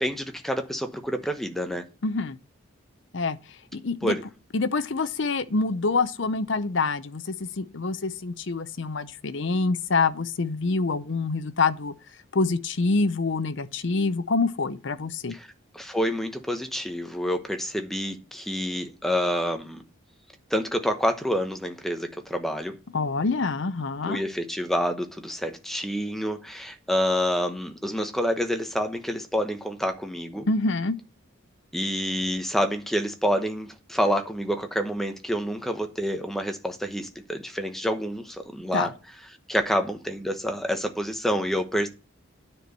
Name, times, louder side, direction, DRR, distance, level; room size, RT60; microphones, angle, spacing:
voice 1, 0.0-1.8 4.0-4.2 15.3-15.5 15.7-19.8 20.5-22.8 24.0-30.5 31.7-38.9 39.5-41.9, equal, ahead, 0.9 m, -28 dB
voice 2, 2.0-2.4 3.1-3.4 3.7-4.1 4.5-11.9 12.3-15.3 22.9-24.2 30.5-31.0 38.7-38.9, left 3 dB, 60° left, 0.7 m, -26 dB
9.8 x 4.5 x 6.7 m
head